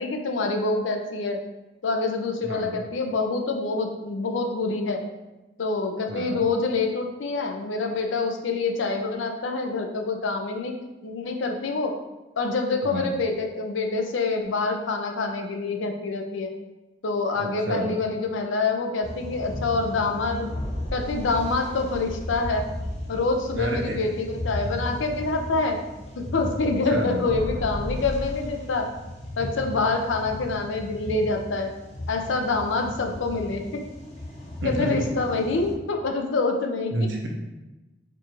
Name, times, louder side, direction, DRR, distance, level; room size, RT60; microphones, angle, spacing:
voice 1, 0.0-1.4 1.8-5.0 5.6-10.7 11.0-12.0 12.4-16.5 17.0-20.5 20.9-22.7 23.1-25.8 26.2-28.9 29.4-31.7 32.1-33.8 34.6-36.9, left 3 dB, 85° left, 4 dB, 0.5 m, -26 dB
voice 2, 2.4-2.8 6.1-6.4 12.8-13.1 17.4-17.9 23.5-23.9 26.9-27.2 34.6-35.0 36.9-37.3, right 1 dB, 75° right, 1 dB, 0.7 m, -29 dB
sound 1, 19.0-35.7, left 1 dB, 35° left, 0.7 m, -35 dB
4.6 x 2.4 x 3.0 m, 1.1 s
head